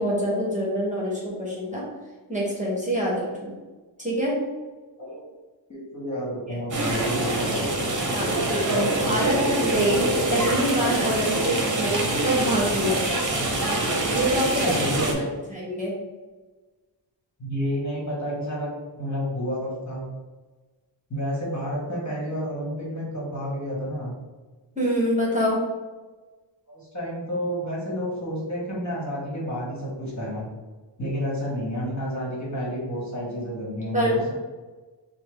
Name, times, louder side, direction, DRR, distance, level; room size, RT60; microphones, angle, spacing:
voice 1, 0.0-1.8 2.3-3.5 4.0-4.3 6.5-6.6 8.1-10.0 10.3-13.2 14.1-14.6 15.5-15.9 24.8-25.6 33.9-34.3, equal, 15° right, -5 dB, 1.0 m, -25 dB
voice 2, 5.7-7.8 14.6-15.2 17.4-20.1 21.1-24.1 26.7-30.5 31.0-34.3, equal, 35° left, -5 dB, 1.4 m, -30 dB
sound 1, 6.7-15.1, right 1 dB, 40° right, 0.9 m, -25 dB
5.6 x 2.2 x 3.3 m, 1.3 s
wide cardioid pair, 110°, 47 cm